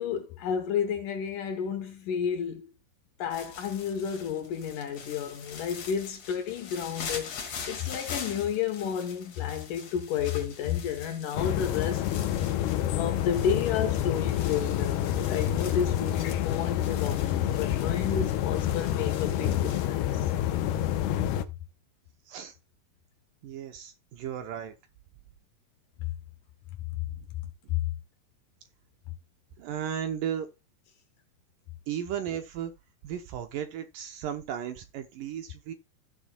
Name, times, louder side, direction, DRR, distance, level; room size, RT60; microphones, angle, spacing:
voice 1, 0.0-2.7 3.2-12.1 12.9-20.3 27.7-27.8, left 8 dB, 70° left, 2.2 m, -31 dB
sound 1, 3.3-19.9, left 6 dB, 50° left, 2.4 m, -44 dB
sound 2, 11.4-21.5, left 11 dB, 90° left, 2.7 m, -28 dB
voice 2, 23.4-24.8 27.1-27.3 27.6-27.7 29.6-30.5 31.9-32.7 33.0-35.7, right 9 dB, 75° right, 2.2 m, -35 dB
16.0 x 6.4 x 2.3 m
omnidirectional pair, 4.5 m